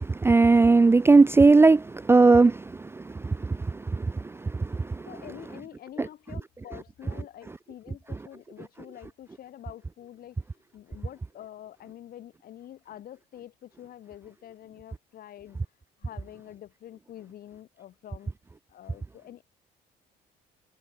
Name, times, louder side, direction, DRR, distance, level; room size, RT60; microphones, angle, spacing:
voice 1, 0.0-5.0, right 3 dB, 15° right, 0.4 m, -19 dB
voice 2, 3.1-3.5 5.0-10.4 10.7-15.6 16.0-18.3 18.7-19.4, left 11 dB, 60° left, 7.2 m, -46 dB
cardioid pair, 110°, 17 cm